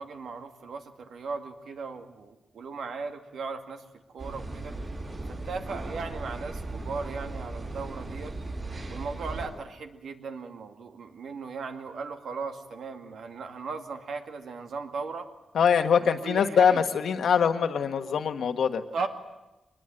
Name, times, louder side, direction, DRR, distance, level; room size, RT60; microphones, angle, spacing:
voice 1, 0.0-3.8 4.1-4.7 5.3-8.3 8.9-15.3 16.0-16.8 18.9-19.1, right 4 dB, 85° right, 5 dB, 2.2 m, -37 dB
sound 1, 4.2-9.5, right 2 dB, 45° right, 6.7 m, -37 dB
voice 2, 15.5-18.8, left 7 dB, 90° left, 7 dB, 1.5 m, -23 dB
23.5 x 20.5 x 9.1 m, 1.0 s
wide cardioid pair, 130°, 0 cm